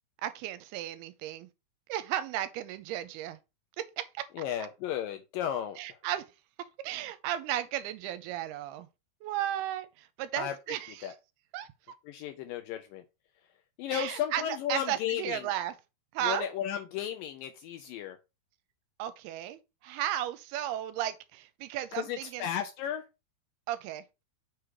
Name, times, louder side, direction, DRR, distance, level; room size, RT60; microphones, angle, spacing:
voice 1, 0.2-1.5 1.9-3.4 3.8-4.3 5.8-6.3 6.6-8.9 9.2-11.2 11.5-11.7 13.9-15.8 16.1-16.5 19.0-22.5 23.7-24.2, right 12 dB, 85° right, 2.5 m, -35 dB
voice 2, 4.4-5.8 10.4-10.5 11.0-11.1 12.1-13.0 13.8-15.4 16.2-18.2 22.0-23.0, left 10 dB, 80° left, 2.0 m, -34 dB
6.3 x 4.8 x 4.8 m
omnidirectional pair, 4.6 m